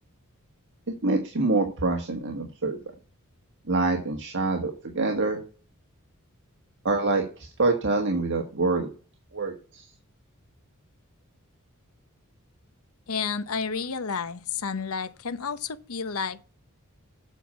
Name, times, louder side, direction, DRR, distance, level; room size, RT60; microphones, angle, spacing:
voice 1, 1.0-2.8 3.7-5.4 6.8-8.9 9.3-9.8, right 3 dB, 55° right, 1.5 m, -26 dB
voice 2, 13.1-16.4, left 5 dB, 75° left, 0.8 m, -31 dB
8.3 x 5.6 x 7.2 m
head